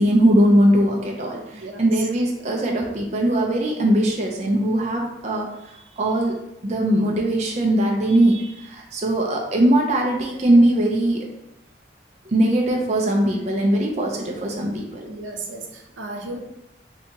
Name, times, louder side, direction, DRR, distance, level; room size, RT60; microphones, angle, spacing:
voice 1, 0.0-11.2 12.3-15.1, right 1 dB, 35° right, 0 dB, 0.4 m, -20 dB
voice 2, 1.5-2.0 15.1-16.4, right 3 dB, 85° right, 2 dB, 0.6 m, -34 dB
2.7 x 2.7 x 3.4 m, 0.86 s
head